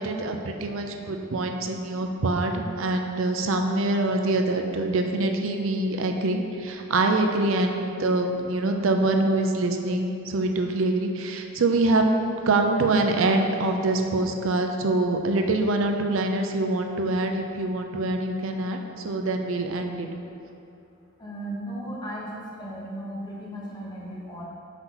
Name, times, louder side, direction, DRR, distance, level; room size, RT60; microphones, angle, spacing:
voice 1, 0.0-12.1 12.4-20.1, right 2 dB, 65° right, 4 dB, 0.5 m, -25 dB
voice 2, 21.2-24.5, right 1 dB, 20° left, -5 dB, 0.9 m, -36 dB
5.9 x 2.9 x 5.5 m, 2.6 s
head